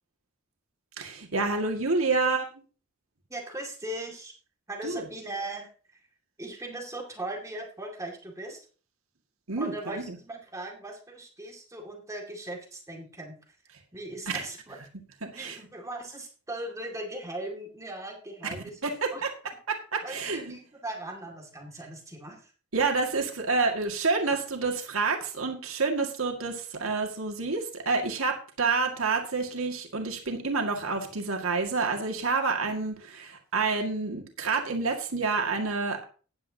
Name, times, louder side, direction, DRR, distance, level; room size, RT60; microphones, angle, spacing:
voice 1, 1.0-2.4 4.8-5.0 9.5-10.0 14.3-14.4 15.2-15.6 18.8-19.3 19.7-20.6 22.7-36.0, right 4 dB, 70° right, 2 dB, 2.0 m, -28 dB
voice 2, 3.3-4.3 4.7-6.0 6.4-8.6 9.6-13.4 13.9-14.8 15.3-18.8 19.1-19.3 20.0-22.5, right 1 dB, 15° right, 1 dB, 2.2 m, -39 dB
14.5 x 10.5 x 2.8 m, 0.38 s
head